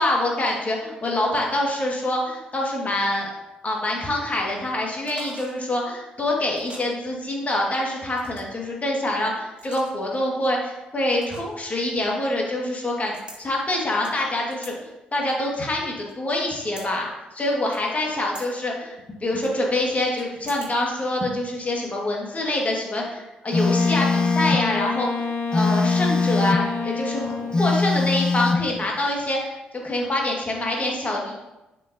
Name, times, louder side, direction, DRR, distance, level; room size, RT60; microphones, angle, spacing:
voice 1, 0.0-3.3 3.6-14.7 15.1-29.5 29.8-31.3, left 1 dB, 35° left, -1 dB, 2.0 m, -25 dB
sound 1, 5.0-5.6 6.5-6.9 8.1-8.6 9.5-10.2 11.2-11.7 13.1-13.4 14.0-14.7 15.3-16.1 16.5-16.9 17.7-18.1 18.3-18.5 19.4-20.7 21.0-21.1, right 1 dB, 25° right, 1.6 m, -44 dB
Wind instrument woodwind instrument, 23.5-27.8, left 5 dB, 60° left, 0.9 m, -28 dB
Telephone, 23.5-24.7 25.5-26.7 27.5-28.7, left 4 dB, 20° left, 0.4 m, -22 dB
7.1 x 5.4 x 2.8 m, 1.0 s
hypercardioid pair, 45°, 4 cm